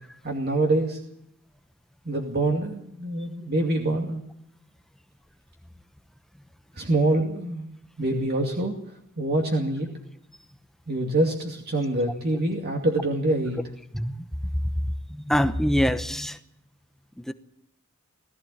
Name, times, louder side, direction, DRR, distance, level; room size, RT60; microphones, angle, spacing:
voice 1, 0.2-1.0 2.1-4.2 6.8-7.7 8.0-8.7 9.2-9.9 10.9-13.6, right 2 dB, 45° right, 2.5 m, -25 dB
voice 2, 13.9-14.3 15.1-16.4 17.2-17.3, equal, ahead, 0.9 m, -25 dB
20.5 x 15.0 x 8.7 m
head